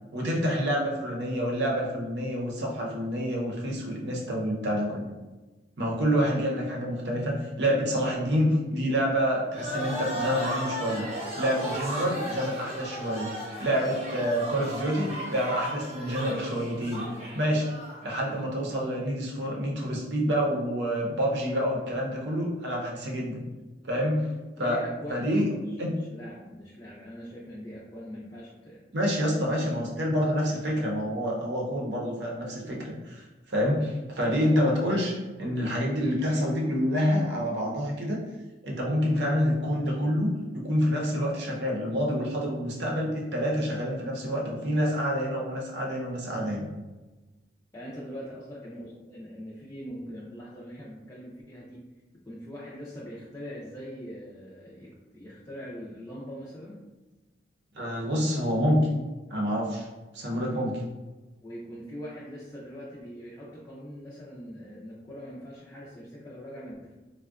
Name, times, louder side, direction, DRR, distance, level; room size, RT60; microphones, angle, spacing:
voice 1, 0.1-5.0 5.8-11.1 11.4-13.3 13.6-17.0 17.3-17.7 18.0-23.4 23.9-24.3 24.6-24.8 25.1-25.5 25.8-25.9 28.9-38.2 38.6-46.7 57.7-58.8 59.3-59.9 60.1-60.8, equal, 75° right, -2 dB, 0.7 m, -27 dB
sound 1, 9.5-18.3, right 1 dB, 35° right, 0.8 m, -35 dB
voice 2, 24.6-28.8 29.3-30.1 47.7-51.9 52.3-56.8 61.4-66.9, equal, 15° left, -7 dB, 0.4 m, -42 dB
3.5 x 2.1 x 2.3 m, 1.2 s
head